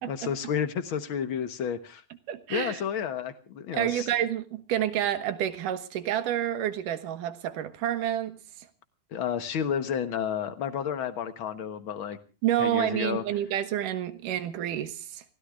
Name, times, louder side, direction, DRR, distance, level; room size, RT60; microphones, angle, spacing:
voice 1, 0.1-2.0 2.5-4.1 9.1-12.2 12.6-13.2, left 8 dB, 70° left, 10 dB, 1.2 m, -31 dB
voice 2, 2.3-2.8 3.7-8.7 12.4-15.2, right 11 dB, 75° right, 11 dB, 2.8 m, -29 dB
29.5 x 16.5 x 2.4 m, 0.35 s
omnidirectional pair, 4.0 m